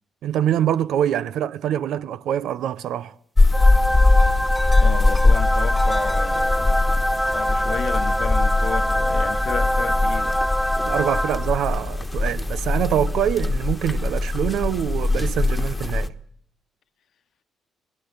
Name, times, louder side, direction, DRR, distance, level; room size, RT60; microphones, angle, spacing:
voice 1, 0.2-3.1 10.8-16.1, right 10 dB, 80° right, 0.9 m, -24 dB
sound 1, 3.4-16.1, left 2 dB, 20° left, 1.4 m, -21 dB
sound 2, 3.5-11.8, equal, ahead, 1.3 m, -24 dB
voice 2, 4.8-10.4, left 8 dB, 65° left, 1.3 m, -33 dB
25.0 x 18.5 x 8.2 m
cardioid pair, 90°, 0 cm